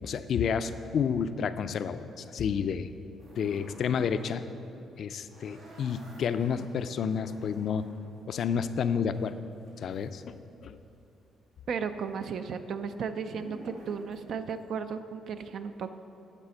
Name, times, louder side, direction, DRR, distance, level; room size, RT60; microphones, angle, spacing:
voice 1, 0.0-2.9 3.4-4.4 5.0-7.8 8.3-9.4 9.8-10.4 10.6-10.8, left 7 dB, 65° left, 11 dB, 0.4 m, -30 dB
sound 1, 3.2-4.4 4.6-10.8 11.1-14.7, right 1 dB, 85° right, 2.2 m, -51 dB
voice 2, 11.7-15.9, right 6 dB, 65° right, 9 dB, 0.4 m, -35 dB
9.0 x 4.2 x 7.0 m, 2.8 s
cardioid pair, 90°, 0 cm